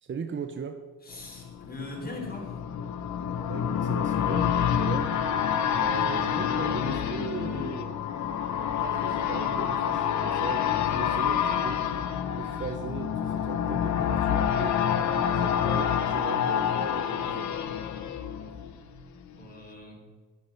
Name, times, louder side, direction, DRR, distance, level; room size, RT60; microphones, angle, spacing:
voice 1, 0.0-0.8 3.5-5.1 5.8-8.0 8.8-11.9 12.4-14.9 15.2-17.6, right 6 dB, 40° right, 7 dB, 0.9 m, -38 dB
voice 2, 1.0-2.6 19.1-20.0, left 2 dB, 30° left, 0 dB, 4.1 m, -41 dB
sound 1, 1.2-19.0 19.4-19.5, left 8 dB, 70° left, 1.2 m, -28 dB
10.0 x 9.9 x 6.5 m, 1.4 s
cardioid pair, 90°, 30 cm